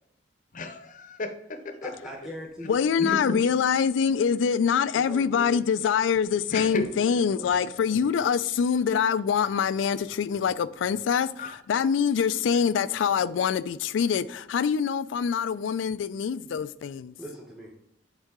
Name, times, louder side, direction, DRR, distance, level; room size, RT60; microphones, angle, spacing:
voice 1, 0.5-1.9 3.0-3.4 6.5-6.8 11.4-11.5, left 1 dB, 45° left, 0.7 m, -33 dB
voice 2, 1.8-2.7 4.9-5.6 6.6-7.5 7.7-8.1 17.2-17.7, equal, 5° right, 0.9 m, -42 dB
voice 3, 2.7-17.1, left 7 dB, 85° left, 0.3 m, -25 dB
8.2 x 3.7 x 3.6 m
head